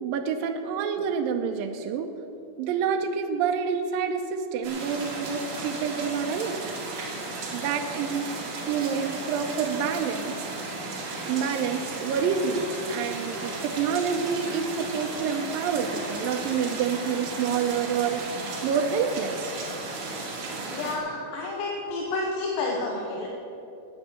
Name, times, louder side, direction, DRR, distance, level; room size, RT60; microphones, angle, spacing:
voice 1, 0.0-2.1 2.6-6.7 7.5-8.3 8.7-10.4 11.2-19.5 21.2-21.3, right 6 dB, 85° right, 4 dB, 2.4 m, -28 dB
sound 1, 4.6-21.0, right 3 dB, 65° right, 3.6 m, -35 dB
voice 2, 20.7-23.3, left 3 dB, 75° left, -1 dB, 2.9 m, -30 dB
12.5 x 9.1 x 8.7 m, 2.9 s
omnidirectional pair, 4.1 m